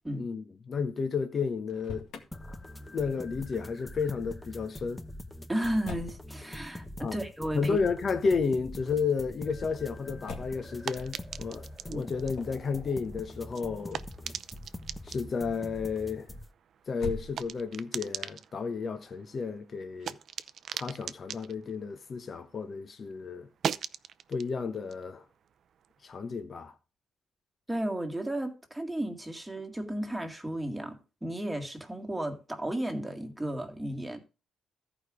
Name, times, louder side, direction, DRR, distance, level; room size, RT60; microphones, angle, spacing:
voice 1, 0.1-2.1 2.9-5.0 7.0-7.2 7.5-14.0 15.0-16.3 16.9-20.2 20.7-23.5 24.3-25.2 26.0-26.7, left 5 dB, 45° left, 1.0 m, -32 dB
Motor vehicle (road), 1.6-2.3 5.8-6.2 8.2-8.6 10.2-10.7 12.3-12.7 16.9-17.8, left 4 dB, 80° left, 2.1 m, -41 dB
sound 1, 2.3-16.5, left 1 dB, 10° left, 0.9 m, -44 dB
voice 2, 5.5-7.8 11.9-12.1 27.7-34.2, right 1 dB, 5° right, 2.0 m, -34 dB
sound 2, 10.0-22.8 23.1-26.3, right 8 dB, 60° right, 0.6 m, -42 dB
14.0 x 5.0 x 4.9 m
cardioid pair, 120°, 0 cm